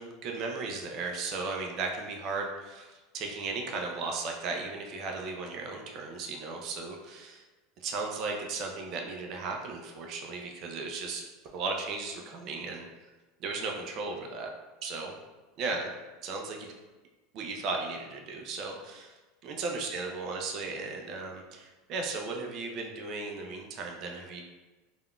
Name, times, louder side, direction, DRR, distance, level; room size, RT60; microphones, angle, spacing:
voice 1, 0.0-7.4 7.8-11.2 11.5-12.9 13.4-14.5 14.8-15.1 15.6-15.9 16.2-16.4 17.3-19.1 19.4-24.4, right 3 dB, 50° right, 2 dB, 0.5 m, -36 dB
3.4 x 2.3 x 2.3 m, 1.2 s
hypercardioid pair, 90°, 0 cm